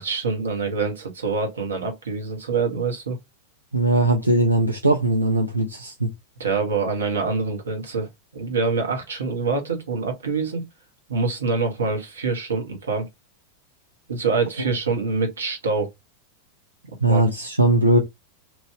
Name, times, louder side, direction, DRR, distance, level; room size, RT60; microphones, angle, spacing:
voice 1, 0.0-3.2 6.4-10.6 11.1-13.1 14.1-15.9 17.1-17.2, right 4 dB, 70° right, 1.1 m, -25 dB
voice 2, 3.7-6.1 17.0-18.0, right 2 dB, 85° right, 0.5 m, -19 dB
3.1 x 2.6 x 3.1 m
figure-of-eight pair, 90°, 0 cm